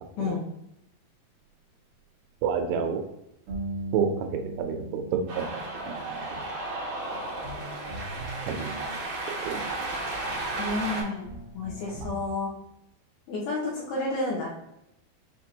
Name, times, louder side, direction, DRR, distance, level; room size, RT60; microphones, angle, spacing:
voice 1, 2.4-3.0 3.9-4.1 4.6-5.6 5.9-6.5 8.5-8.9 9.5-9.9, right 7 dB, 90° right, 4 dB, 3.0 m, -29 dB
sound 1, 3.5-9.4 10.6-10.7 11.2-12.3, right 1 dB, 70° right, 1.7 m, -40 dB
Cheering, 5.3-11.0, right 2 dB, 50° right, 2.2 m, -34 dB
voice 2, 10.6-11.3 11.5-12.5 13.3-14.5, left 3 dB, 75° left, -5 dB, 2.4 m, -30 dB
7.4 x 2.6 x 2.8 m, 0.82 s
omnidirectional pair, 5.2 m